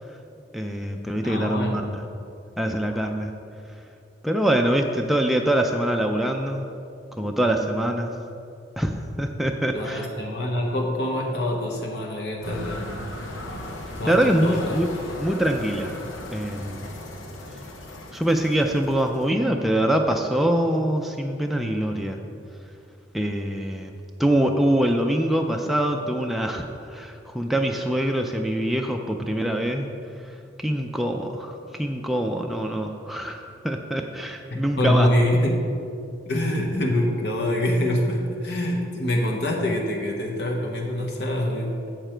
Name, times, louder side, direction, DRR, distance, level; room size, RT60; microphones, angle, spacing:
voice 1, 0.5-2.0 2.6-3.3 4.2-6.7 7.2-8.2 8.8-10.1 14.1-14.9 15.2-15.9 16.3-16.9 18.1-22.2 23.1-23.9 24.2-29.9 30.2-35.1, right 1 dB, ahead, 2 dB, 0.3 m, -24 dB
voice 2, 1.2-1.8 9.7-12.9 14.0-14.8 34.8-35.5 36.3-41.8, left 1 dB, 60° left, -1 dB, 1.0 m, -25 dB
sound 1, 12.4-19.3, left 1 dB, 85° left, 0.9 m, -37 dB
7.5 x 6.9 x 4.4 m, 2.5 s
head